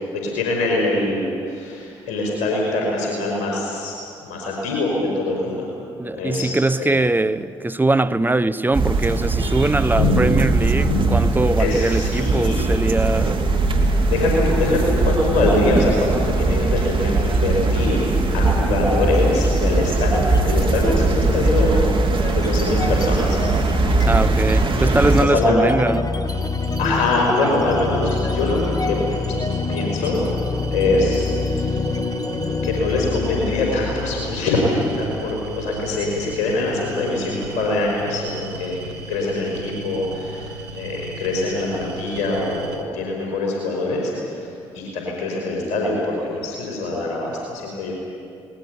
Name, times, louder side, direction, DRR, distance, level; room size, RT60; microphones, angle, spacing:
voice 1, 0.1-3.9 4.2-5.7 6.2-7.0 9.9-10.3 10.8-11.2 11.6-12.6 13.2-13.3 13.8-18.0 18.3-21.8 22.3-23.4 23.8-23.9 25.2-25.6 26.8-29.0 29.7-30.3 30.7-31.7 32.6-38.8 39.1-40.4 40.7-44.5 44.7-47.9, left 2 dB, 70° left, 5.3 m, -23 dB
voice 2, 6.0-13.5 24.0-26.1 27.4-27.7, right 2 dB, 15° right, 0.9 m, -21 dB
sound 1, 8.7-25.2, right 3 dB, 40° right, 2.9 m, -20 dB
sound 2, 19.0-19.6 19.9-36.5, left 3 dB, 30° left, 1.3 m, -27 dB
sound 3, 26.3-42.8, right 2 dB, 85° right, 1.3 m, -36 dB
20.0 x 20.0 x 9.6 m
hypercardioid pair, 50°, 13 cm